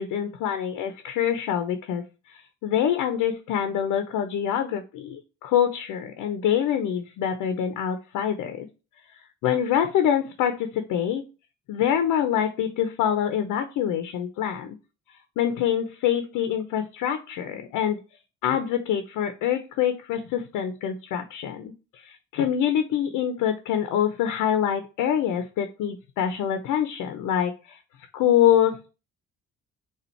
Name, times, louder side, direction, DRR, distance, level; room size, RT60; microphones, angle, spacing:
voice 1, 0.0-2.0 2.6-8.7 9.4-11.2 11.7-14.7 15.4-18.0 18.4-27.8 28.1-28.8, left 9 dB, 80° left, 7 dB, 0.7 m, -25 dB
4.3 x 2.5 x 4.3 m, 0.31 s
supercardioid pair, 65°, 31 cm